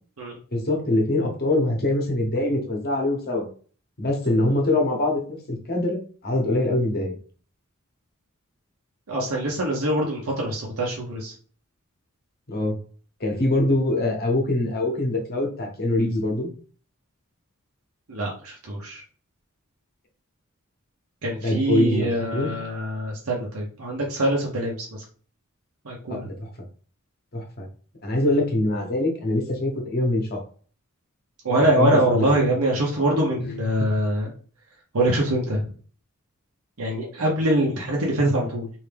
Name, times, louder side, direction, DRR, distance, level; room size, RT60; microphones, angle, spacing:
voice 1, 0.5-3.5 4.0-7.1 12.5-12.7 13.2-16.5 21.4-22.5 26.1-26.5 27.3-27.7 28.0-30.4 31.7-32.4, left 1 dB, 50° left, 1 dB, 1.0 m, -24 dB
voice 2, 9.1-11.3 18.1-19.0 21.2-25.0 25.8-26.3 31.4-34.3 34.9-35.7 36.8-38.7, right 1 dB, 90° right, -2 dB, 0.8 m, -24 dB
3.3 x 2.7 x 3.3 m, 0.43 s
head